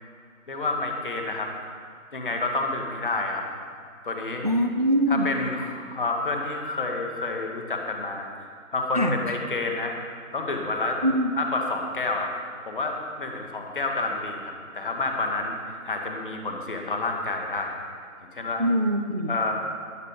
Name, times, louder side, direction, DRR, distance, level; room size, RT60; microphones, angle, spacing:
voice 1, 0.5-1.5 2.1-3.4 4.0-4.5 5.1-8.3 8.7-9.9 10.3-11.0 11.4-12.3 12.7-17.8 18.3-18.6 19.3-19.5, left 3 dB, 35° left, 2 dB, 2.3 m, -29 dB
voice 2, 4.4-5.3 8.9-9.2 11.0-11.3 18.6-19.3, equal, 30° right, 5 dB, 0.6 m, -23 dB
21.0 x 10.5 x 5.3 m, 2.2 s
figure-of-eight pair, 155°, 42 cm